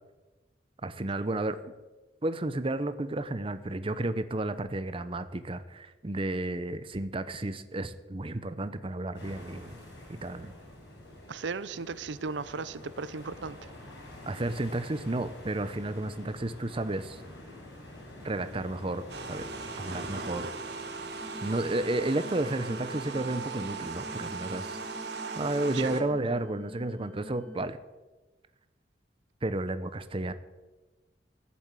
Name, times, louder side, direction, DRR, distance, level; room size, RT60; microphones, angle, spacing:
voice 1, 0.8-1.6 2.2-9.8 10.1-10.5 14.3-17.2 18.2-19.5 19.8-20.5 21.4-24.8 25.4-27.8 29.4-30.3, right 2 dB, 30° right, 12 dB, 0.7 m, -32 dB
sound 1, 9.1-24.6, left 1 dB, 80° left, 6.3 m, -48 dB
voice 2, 11.3-13.6 25.7-26.0, right 4 dB, 85° right, 16 dB, 0.6 m, -36 dB
sound 2, 19.1-26.0, right 4 dB, 65° right, 1.4 m, -38 dB
sound 3, 21.2-27.7, left 1 dB, 10° left, 0.7 m, -47 dB
15.0 x 7.2 x 9.0 m, 1.2 s
head